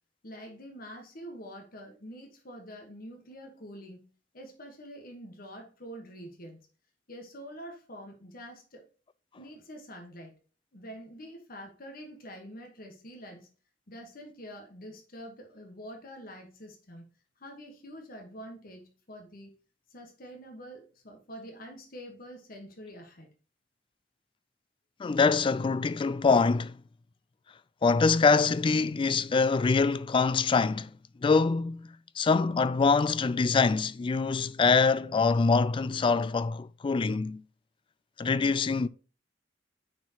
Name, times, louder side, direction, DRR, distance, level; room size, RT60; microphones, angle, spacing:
voice 1, 0.2-4.0 4.3-6.6 7.1-8.8 9.4-10.3 10.7-13.5 13.9-17.1 17.4-19.5 19.9-23.3, equal, 55° left, 1.4 m, -46 dB
voice 2, 25.0-26.8 27.8-30.9 31.2-31.9 32.2-37.4 38.2-38.9, left 4 dB, 30° left, 0.3 m, -24 dB
9.4 x 4.4 x 2.9 m
head